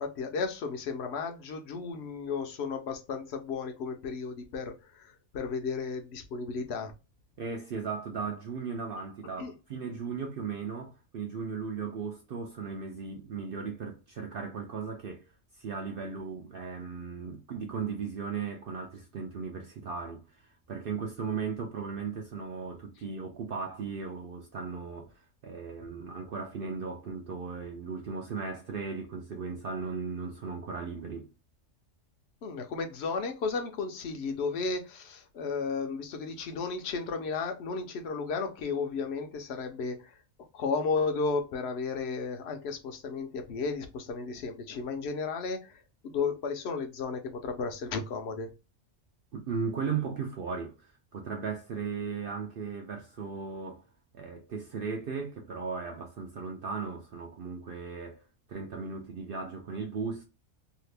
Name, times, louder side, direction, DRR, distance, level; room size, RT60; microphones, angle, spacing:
voice 1, 0.0-6.9 9.4-9.5 32.4-40.2 40.5-48.5, left 4 dB, 65° left, 0.9 m, -34 dB
voice 2, 7.4-15.3 15.6-31.3 49.3-53.8 54.1-58.2 58.5-60.2, right 5 dB, 60° right, 0.6 m, -37 dB
2.8 x 2.4 x 3.3 m
omnidirectional pair, 1.3 m